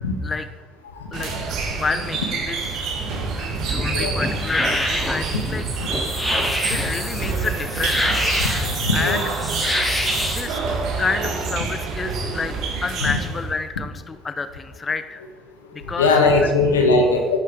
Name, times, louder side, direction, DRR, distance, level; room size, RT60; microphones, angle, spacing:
voice 1, 1.1-2.9 3.4-5.6 6.7-8.5 8.9-9.2 10.3-10.6 11.0-12.5 12.8-15.2 15.7-16.1 16.4-16.5, left 4 dB, 30° left, 11 dB, 0.7 m, -29 dB
sound 1, 1.1-13.6, right 4 dB, 65° right, 2.2 m, -27 dB
sound 2, 3.5-10.4, left 1 dB, 15° left, 4.0 m, -26 dB
voice 2, 8.4-9.2 13.0-13.1 16.0-17.4, left 3 dB, 90° left, 4 dB, 1.4 m, -20 dB
11.0 x 9.1 x 5.1 m, 1.4 s
hypercardioid pair, 60°, 0 cm